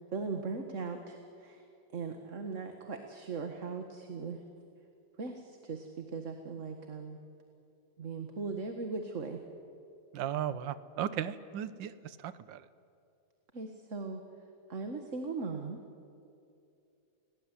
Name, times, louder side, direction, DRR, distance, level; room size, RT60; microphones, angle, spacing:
voice 1, 0.1-1.6 1.9-4.4 5.2-7.2 8.0-9.4 13.5-14.2 14.7-15.8, right 4 dB, 40° right, 5 dB, 1.9 m, -39 dB
voice 2, 10.1-12.6, right 10 dB, 75° right, 15 dB, 1.6 m, -36 dB
29.5 x 19.0 x 9.9 m, 2.6 s
omnidirectional pair, 2.1 m